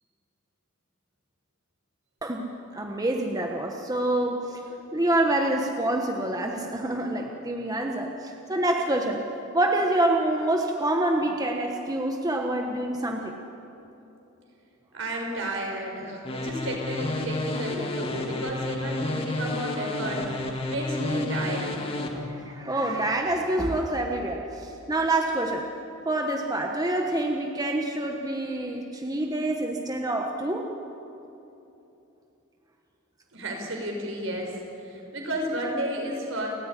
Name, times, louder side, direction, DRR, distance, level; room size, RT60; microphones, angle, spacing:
voice 1, 2.7-4.6 4.9-9.2 9.5-13.4 22.1-25.7 26.0-30.7, right 1 dB, 20° right, 2 dB, 1.3 m, -27 dB
voice 2, 14.9-21.9 33.3-36.5, right 1 dB, 65° right, 1 dB, 5.6 m, -32 dB
sound 1, 16.3-22.1, left 2 dB, 25° left, 2.1 m, -31 dB
29.5 x 14.5 x 9.9 m, 2.9 s
head